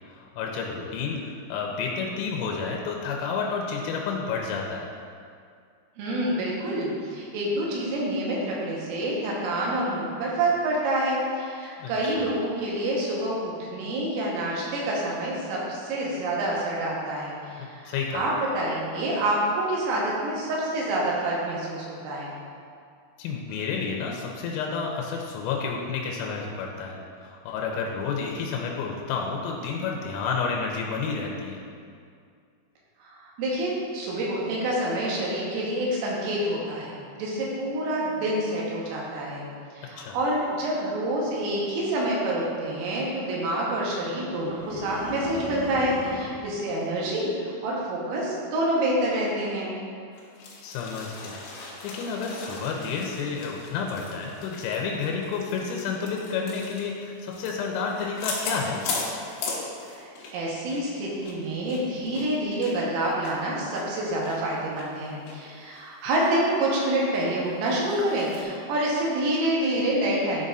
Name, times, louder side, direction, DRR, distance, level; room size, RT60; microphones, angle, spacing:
voice 1, 0.1-4.9 11.8-12.4 17.8-18.2 23.2-31.6 40.0-40.2 50.6-58.8, left 5 dB, 90° left, 0 dB, 3.3 m, -30 dB
voice 2, 6.0-22.3 33.0-39.5 39.8-49.7 59.9-70.5, right 1 dB, 80° right, -4 dB, 3.8 m, -27 dB
sound 1, 44.3-46.4, equal, 55° right, 2.3 m, -36 dB
sound 2, 50.1-60.4 60.7-60.8 61.2-64.4 64.8-64.9 65.3-65.4 65.7-66.3 66.7-66.8 67.2-68.4, left 3 dB, 70° left, 2.9 m, -38 dB
11.0 x 5.4 x 2.5 m, 2.3 s
omnidirectional pair, 5.9 m